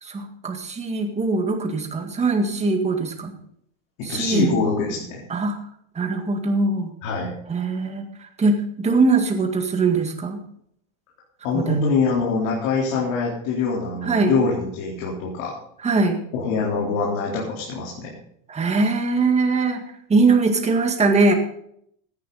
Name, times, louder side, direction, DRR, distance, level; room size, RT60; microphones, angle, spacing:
voice 1, 0.0-3.3 4.0-4.5 5.3-5.6 6.0-6.9 7.5-10.4 11.5-11.8 14.0-14.3 15.8-16.2 18.5-19.8 20.1-21.3, right 3 dB, 15° right, 4 dB, 1.9 m, -21 dB
voice 2, 4.0-5.3 7.0-7.4 11.4-15.6 16.3-18.1, left 4 dB, 70° left, -3 dB, 4.0 m, -24 dB
16.0 x 10.5 x 4.1 m, 0.68 s
supercardioid pair, 150°, 41 cm